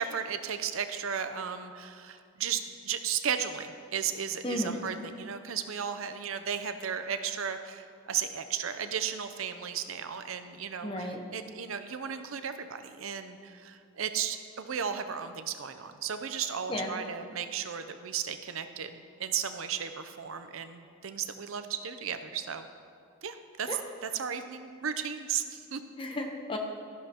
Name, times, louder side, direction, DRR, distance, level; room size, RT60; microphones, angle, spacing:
voice 1, 0.0-22.7 23.2-25.8, right 8 dB, 75° right, 9 dB, 0.6 m, -35 dB
voice 2, 4.4-4.8 10.8-11.2 16.7-17.0 23.7-23.8 26.0-26.6, left 1 dB, 25° left, 3 dB, 0.9 m, -33 dB
13.0 x 11.5 x 2.9 m, 2.4 s
head